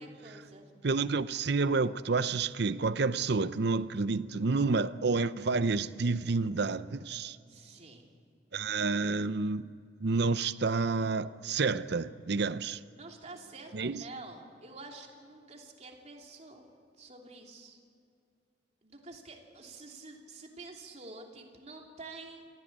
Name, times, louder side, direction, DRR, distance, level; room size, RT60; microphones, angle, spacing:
voice 1, 0.0-0.7 7.5-8.1 12.9-16.7 17.0-17.8 18.8-22.5, right 3 dB, 40° right, 3.1 m, -48 dB
voice 2, 0.8-7.4 8.5-9.7 10.0-12.8 13.7-14.0, right 4 dB, 65° right, 0.7 m, -29 dB
28.0 x 15.5 x 8.6 m
head